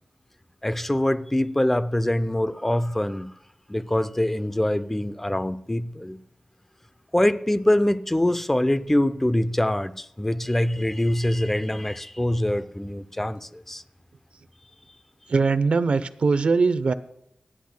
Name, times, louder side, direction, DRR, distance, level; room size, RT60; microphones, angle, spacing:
voice 1, 0.6-3.3 3.7-6.2 7.1-13.8, left 1 dB, 10° left, 0.5 m, -24 dB
voice 2, 15.3-16.9, right 4 dB, 60° right, 0.7 m, -21 dB
28.0 x 10.5 x 2.2 m
wide cardioid pair, 120°, 2 cm